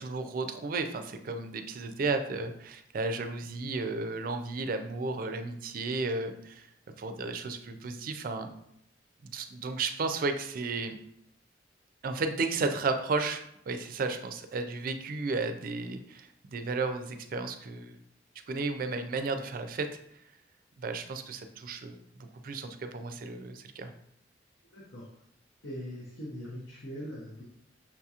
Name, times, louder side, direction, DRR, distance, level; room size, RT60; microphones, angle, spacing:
voice 1, 0.0-6.7 7.0-8.5 9.2-11.0 12.0-18.0 18.5-19.9 20.8-23.9, right 3 dB, 50° right, 7 dB, 0.4 m, -33 dB
voice 2, 24.7-25.2 25.6-27.4, equal, 75° left, -5 dB, 0.8 m, -41 dB
5.8 x 2.8 x 2.4 m, 0.74 s
head